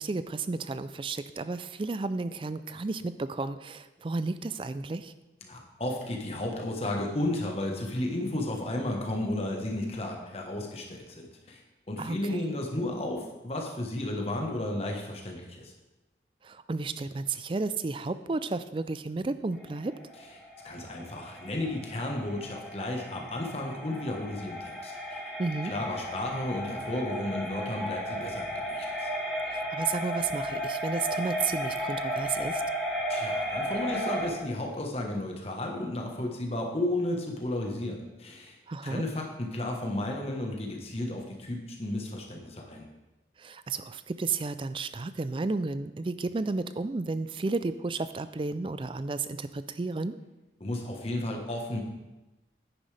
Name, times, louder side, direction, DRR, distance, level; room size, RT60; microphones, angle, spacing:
voice 1, 0.0-5.1 12.0-12.5 16.4-20.0 25.4-25.7 29.5-32.6 38.7-39.0 43.4-50.1, right 3 dB, 30° right, 13 dB, 0.4 m, -32 dB
voice 2, 5.4-11.6 11.9-15.7 20.6-25.2 25.6-29.1 33.1-38.5 38.8-42.8 50.6-51.8, left 1 dB, 35° left, 1 dB, 1.3 m, -33 dB
sound 1, 19.6-34.3, equal, ahead, 2.1 m, -34 dB
10.0 x 9.4 x 3.4 m, 1.1 s
head